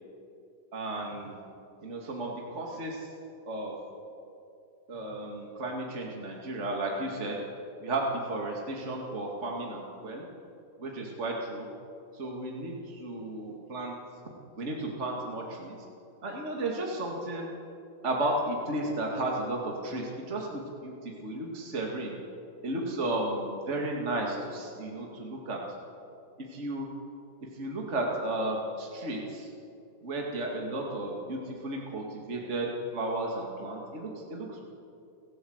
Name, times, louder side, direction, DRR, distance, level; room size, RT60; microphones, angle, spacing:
voice 1, 0.7-1.4 1.8-3.1 3.5-3.8 4.9-7.4 7.8-10.3 10.8-11.7 12.1-13.9 14.6-15.8 16.2-17.5 18.0-22.2 22.6-25.6 26.5-26.9 27.5-29.5 30.0-34.6, right 1 dB, 40° right, -1 dB, 2.4 m, -33 dB
30.0 x 12.5 x 8.0 m, 2.6 s
omnidirectional pair, 2.1 m